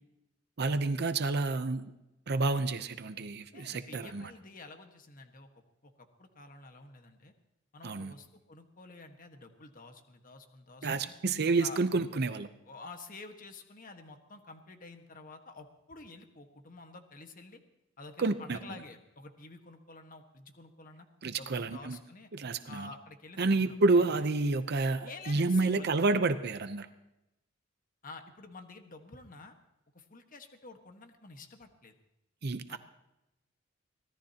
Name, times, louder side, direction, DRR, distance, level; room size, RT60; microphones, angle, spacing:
voice 1, 0.6-1.8 2.3-4.3 7.8-8.1 10.8-12.5 18.2-18.6 21.2-22.0 22.3-22.9 23.4-26.9 32.4-32.8, right 3 dB, 55° right, 10 dB, 0.7 m, -29 dB
voice 2, 3.5-5.5 5.8-7.3 7.7-11.1 11.6-11.8 12.7-17.6 18.0-21.1 21.4-22.3 22.7-23.8 25.0-25.9 28.0-29.5 29.9-32.0 32.7-32.8, left 3 dB, 45° left, 6 dB, 1.5 m, -50 dB
24.5 x 17.0 x 2.9 m, 0.91 s
head